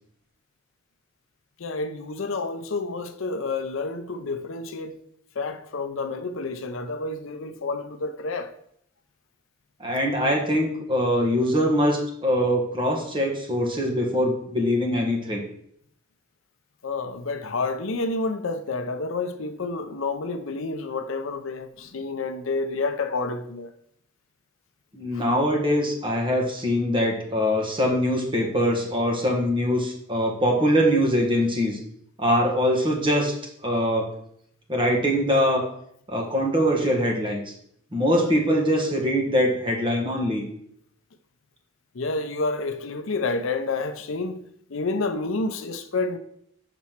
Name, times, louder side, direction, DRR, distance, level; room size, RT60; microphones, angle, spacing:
voice 1, 1.6-5.0 5.4-8.5 16.8-23.7 25.1-25.2 41.9-44.4 44.7-46.2, left 3 dB, 65° left, 0.6 m, -29 dB
voice 2, 9.8-15.4 24.9-31.8 32.2-33.3 33.6-34.1 34.7-35.7 36.1-37.4 37.9-40.4, equal, 25° right, 1.4 m, -23 dB
6.0 x 4.3 x 5.8 m
head